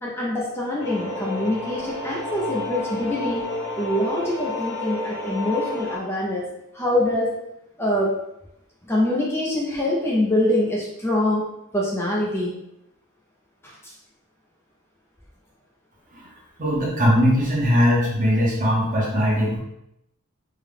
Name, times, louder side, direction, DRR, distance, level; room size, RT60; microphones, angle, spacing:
voice 1, 0.0-3.5 3.8-6.5 6.7-7.3 7.8-8.2 8.8-11.4 11.7-12.6 13.8-13.9, left 1 dB, 10° left, -5 dB, 0.5 m, -24 dB
sound 1, 0.8-6.0, left 2 dB, 60° left, 1.4 m, -30 dB
voice 2, 16.6-19.6, equal, 40° right, -4 dB, 1.0 m, -20 dB
3.6 x 2.2 x 3.5 m, 0.82 s
head